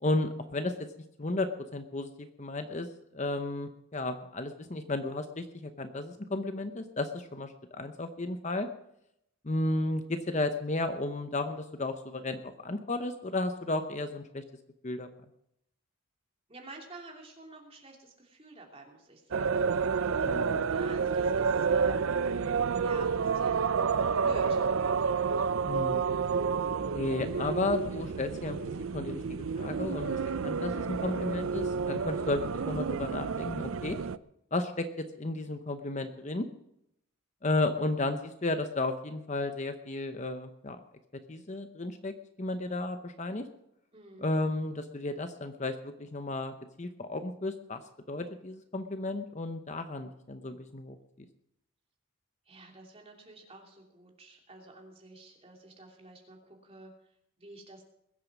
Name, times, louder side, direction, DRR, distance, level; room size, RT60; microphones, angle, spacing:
voice 1, 0.0-0.7 1.2-2.9 3.1-8.7 9.4-14.4 14.8-15.1 20.2-20.7 25.7-26.2 26.9-28.6 28.9-29.2 29.6-34.0 34.5-36.5 37.4-40.8 41.3-43.4 44.2-47.8 48.1-51.3, left 2 dB, 30° left, 8 dB, 0.8 m, -33 dB
voice 2, 16.5-19.6 20.6-22.2 22.8-23.8 24.1-24.6 43.9-44.3 52.5-56.9 57.4-57.8, right 2 dB, 25° right, 0 dB, 2.9 m, -49 dB
sound 1, 19.3-34.2, right 5 dB, 65° right, 0.5 m, -30 dB
21.5 x 8.5 x 6.1 m, 0.78 s
head